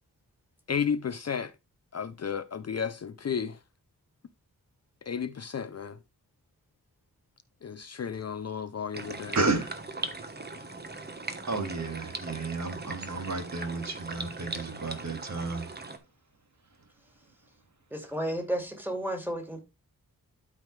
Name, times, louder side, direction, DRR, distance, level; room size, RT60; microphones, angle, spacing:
voice 1, 0.7-1.5 1.9-3.6 5.1-6.0 7.6-9.4, left 7 dB, 45° left, 0.6 m, -33 dB
sound 1, 8.9-16.0, right 3 dB, 25° right, 1.3 m, -39 dB
voice 2, 9.4-9.7 11.5-15.7, right 3 dB, 50° right, 2.2 m, -32 dB
voice 3, 17.9-19.6, right 1 dB, 5° right, 2.6 m, -32 dB
12.0 x 4.9 x 3.3 m
wide cardioid pair, 130°, 36 cm